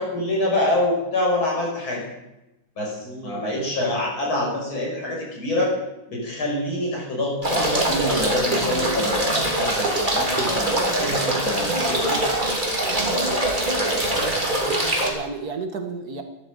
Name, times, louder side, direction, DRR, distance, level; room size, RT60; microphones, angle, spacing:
voice 1, 0.0-2.0 2.8-5.7 6.1-12.6 12.9-13.5 14.1-14.2, left 1 dB, 80° left, -2 dB, 6.5 m, -26 dB
voice 2, 3.0-3.8 13.7-14.0 14.6-16.2, right 4 dB, 50° right, 6 dB, 2.0 m, -34 dB
sound 1, 7.4-15.1, right 1 dB, 20° right, 3.4 m, -23 dB
14.0 x 12.5 x 7.9 m, 0.95 s
omnidirectional pair, 2.2 m